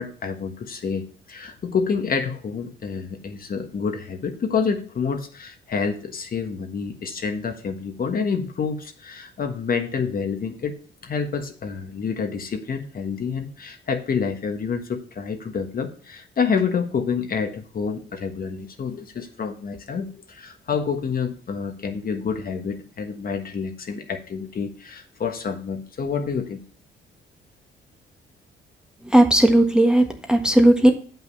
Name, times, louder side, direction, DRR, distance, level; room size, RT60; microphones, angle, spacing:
voice 1, 0.0-10.7 11.0-26.6, left 5 dB, 45° left, 5 dB, 1.4 m, -28 dB
voice 2, 29.0-30.9, right 1 dB, 5° right, 5 dB, 1.4 m, -16 dB
7.7 x 5.9 x 5.3 m, 0.42 s
cardioid pair, 90°, 20 cm